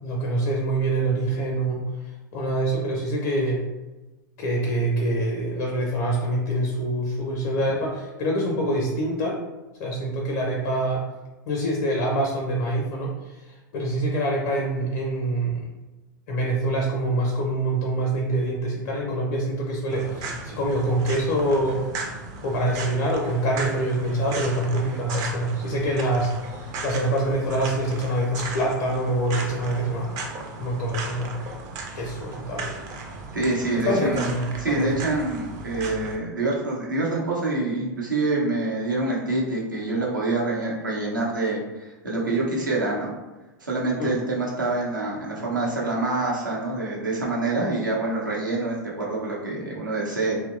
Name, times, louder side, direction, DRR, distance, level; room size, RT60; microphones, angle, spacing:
voice 1, 0.0-1.8 2.3-3.6 4.4-9.4 9.8-11.0 11.5-15.7 16.3-21.8 22.4-30.2 30.6-31.3 31.9-32.8 33.8-34.9 44.0-44.2, right 1 dB, 55° left, -1 dB, 0.4 m, -25 dB
sound 1, 19.9-36.2, right 3 dB, 35° right, 0.4 m, -36 dB
voice 2, 33.3-34.2 34.6-43.1 43.6-50.4, right 2 dB, 80° right, -4 dB, 0.7 m, -26 dB
2.7 x 2.1 x 2.4 m, 1.1 s
figure-of-eight pair, 90°, 10 cm